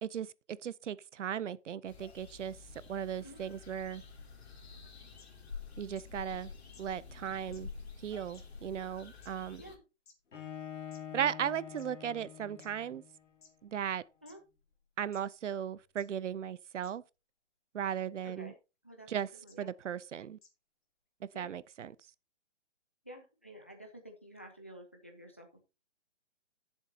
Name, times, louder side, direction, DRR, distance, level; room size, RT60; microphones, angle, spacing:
voice 1, 0.0-2.6 2.9-4.0 5.8-6.5 6.8-7.7 8.0-9.6 11.1-13.0 13.6-14.1 15.0-17.0 17.7-18.5 19.1-19.3 19.6-20.4 21.3-21.9, right 9 dB, 80° right, 0.6 m, -37 dB
sound 1, 1.9-9.8, left 5 dB, 60° left, 2.7 m, -49 dB
sound 2, 5.2-5.3 5.9-6.0 6.7-6.8 7.5-7.6 8.3-8.4 9.2-9.3 10.1-10.2 10.9-11.0 11.8-11.9 12.6-12.7 13.4-13.5 14.3-14.4 15.1-15.2 16.0-16.1 16.8-16.9 18.2-18.3 19.5-19.6 20.4-20.5, left 4 dB, 40° left, 2.6 m, -59 dB
Bowed string instrument, 10.3-13.3, left 9 dB, 80° left, 2.6 m, -46 dB
voice 2, 18.2-18.5 18.8-19.1 19.4-19.7 21.3-21.5 23.0-25.6, right 1 dB, 10° left, 0.6 m, -51 dB
15.5 x 7.3 x 2.8 m
hypercardioid pair, 180°, 36 cm